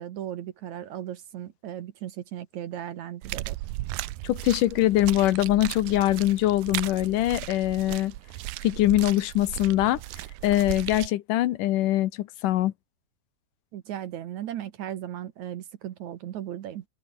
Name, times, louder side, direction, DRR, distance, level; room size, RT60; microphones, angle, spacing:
voice 1, 0.0-3.6 13.7-16.8, right 11 dB, 65° right, 2.3 m, -36 dB
sound 1, 3.2-11.1, right 18 dB, 90° right, 2.5 m, -36 dB
voice 2, 4.2-8.1 8.6-10.0 10.4-12.7, left 15 dB, 75° left, 2.4 m, -23 dB
omnidirectional pair, 3.9 m